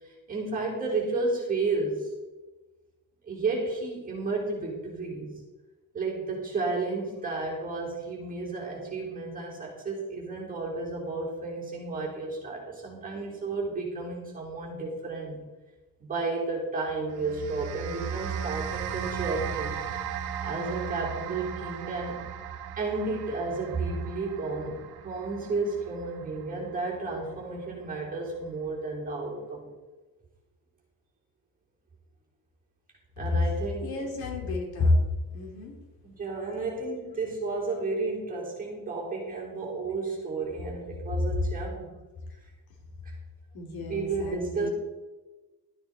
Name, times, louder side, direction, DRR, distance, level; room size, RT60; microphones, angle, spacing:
voice 1, 0.0-2.1 3.2-5.3 5.9-15.4 16.0-19.8 20.4-22.2 22.8-29.6 33.2-34.1 36.0-41.9 43.0-43.2 43.8-44.7, right 3 dB, 20° right, -3 dB, 3.4 m, -32 dB
sound 1, 17.1-27.6, right 8 dB, 75° right, 1.4 m, -37 dB
voice 2, 33.8-35.0 35.3-35.7 43.5-44.7, left 2 dB, 70° left, 1 dB, 3.0 m, -29 dB
13.0 x 9.2 x 4.2 m, 1.2 s
cardioid pair, 150°, 38 cm